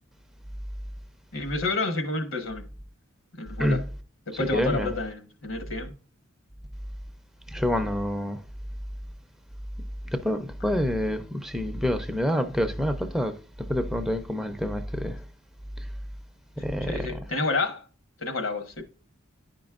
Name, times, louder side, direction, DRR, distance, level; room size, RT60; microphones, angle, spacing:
voice 1, 1.3-2.7 3.3-3.8 4.3-5.9 16.8-17.8 18.2-18.8, left 3 dB, 75° left, 1.2 m, -29 dB
voice 2, 4.5-4.9 7.5-8.4 10.1-13.4 13.7-15.2 16.6-17.1, equal, 5° right, 0.5 m, -27 dB
10.5 x 5.2 x 2.4 m
head